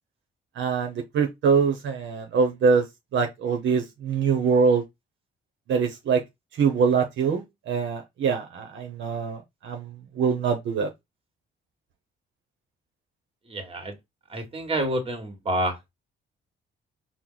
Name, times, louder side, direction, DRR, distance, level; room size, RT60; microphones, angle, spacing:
voice 1, 0.6-2.8 3.1-4.8 5.7-6.2 6.5-10.9, right 5 dB, 70° right, 0.8 m, -24 dB
voice 2, 13.5-13.9 14.3-15.8, right 1 dB, 30° right, 1.4 m, -28 dB
4.5 x 2.1 x 3.8 m
cardioid pair, 90°, 20 cm